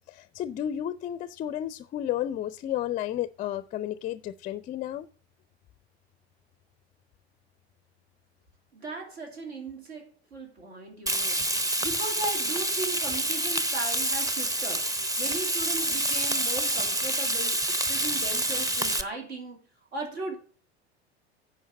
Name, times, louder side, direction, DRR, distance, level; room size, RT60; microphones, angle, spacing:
voice 1, 0.1-5.1, left 11 dB, 25° left, 0.4 m, -32 dB
voice 2, 8.7-11.4 11.8-14.9 15.2-19.6 19.9-20.3, right 2 dB, 75° right, 2.6 m, -37 dB
Frying (food), 11.1-19.0, right 1 dB, 10° right, 0.7 m, -27 dB
10.0 x 4.8 x 7.2 m
figure-of-eight pair, 75°, 33 cm